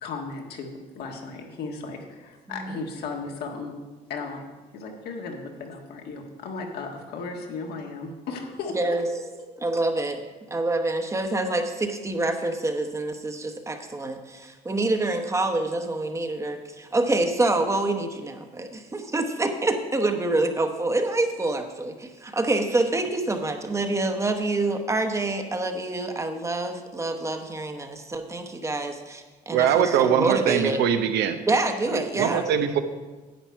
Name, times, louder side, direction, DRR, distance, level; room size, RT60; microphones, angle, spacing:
voice 1, 0.0-3.7 4.1-4.5 4.7-9.2, left 4 dB, 70° left, 2 dB, 1.6 m, -35 dB
voice 2, 9.6-10.2 10.5-30.8 31.5-32.4, right 2 dB, 15° right, 6 dB, 1.0 m, -26 dB
voice 3, 29.5-31.4 31.9-32.8, right 9 dB, 85° right, 8 dB, 0.8 m, -22 dB
10.5 x 8.1 x 4.6 m, 1.2 s
cardioid pair, 110°, 17 cm